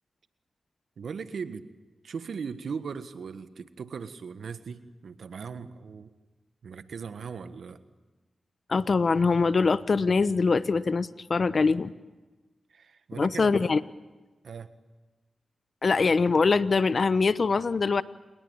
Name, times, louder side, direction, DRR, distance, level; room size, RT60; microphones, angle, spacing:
voice 1, 1.0-1.7 2.0-6.1 6.6-7.8 12.7-13.7 14.4-14.7, right 6 dB, 75° right, 11 dB, 1.5 m, -38 dB
voice 2, 8.7-11.9 13.1-13.8 15.8-18.0, left 4 dB, 60° left, 15 dB, 1.1 m, -23 dB
29.0 x 21.0 x 8.8 m, 1.2 s
cardioid pair, 40°, 0 cm